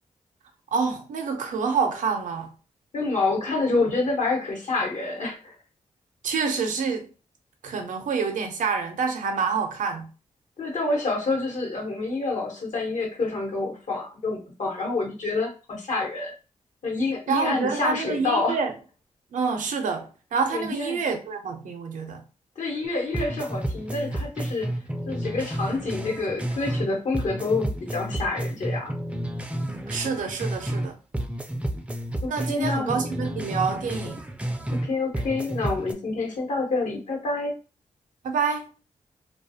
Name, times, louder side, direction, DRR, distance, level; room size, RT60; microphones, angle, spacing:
voice 1, 0.7-2.5 6.2-7.1 7.6-10.1 17.3-18.7 19.3-22.2 29.9-31.0 32.3-34.2 38.2-38.7, right 5 dB, 85° right, 0.5 m, -27 dB
voice 2, 2.9-5.5 10.6-16.3 16.8-18.6 20.5-21.0 22.6-24.7 25.0-28.9 32.2-33.0 34.7-37.5, left 3 dB, 70° left, 1.0 m, -27 dB
sound 1, 22.8-22.9 23.1-26.9 27.1-30.9 31.1-34.9 35.1-35.9, right 1 dB, 10° right, 0.4 m, -31 dB
2.3 x 2.3 x 2.6 m
cardioid pair, 75°, 13 cm